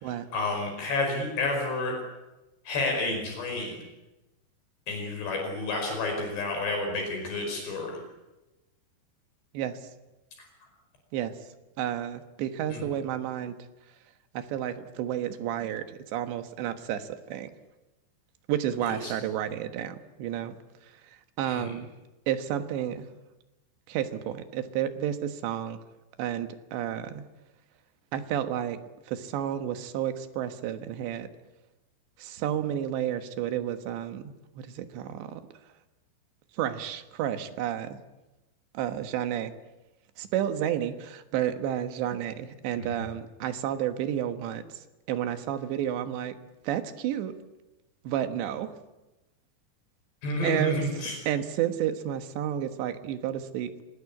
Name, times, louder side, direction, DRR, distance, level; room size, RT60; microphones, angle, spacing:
voice 1, 0.3-2.0 2.7-3.8 4.9-8.0 12.7-12.8 18.8-19.1 21.4-21.7 42.8-43.0 50.2-51.2, left 2 dB, 65° left, 2 dB, 7.1 m, -30 dB
voice 2, 11.8-13.6 14.4-17.5 18.5-20.6 21.4-21.9 22.3-23.1 23.9-25.8 26.2-27.2 28.1-28.8 29.1-31.3 32.2-35.4 36.6-38.0 38.8-39.5 40.2-44.6 45.1-46.4 46.7-47.4 48.1-48.7 50.4-50.8 51.3-53.7, right 10 dB, 75° right, 9 dB, 3.5 m, -31 dB
25.5 x 20.0 x 8.6 m, 1.0 s
omnidirectional pair, 5.2 m